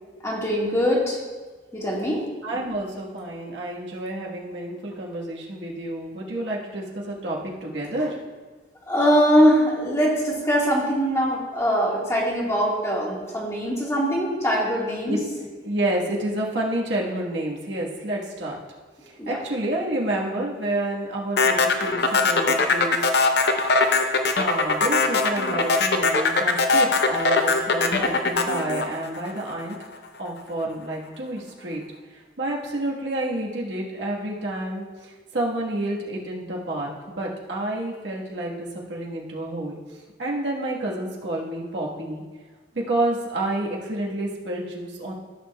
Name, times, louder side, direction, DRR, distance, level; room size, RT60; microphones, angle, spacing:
voice 1, 0.2-1.2 1.7-2.2 8.9-15.2 19.2-19.4, equal, 15° left, -4 dB, 1.6 m, -22 dB
voice 2, 2.4-8.1 15.0-15.2 15.6-18.6 19.3-23.1 24.4-29.8 30.2-31.8 32.4-39.8 40.2-42.2 42.7-45.1, right 1 dB, 80° right, -3 dB, 1.4 m, -29 dB
sound 1, 21.4-29.7, left 3 dB, 60° left, 0.7 m, -21 dB
14.5 x 6.6 x 2.3 m, 1.3 s
head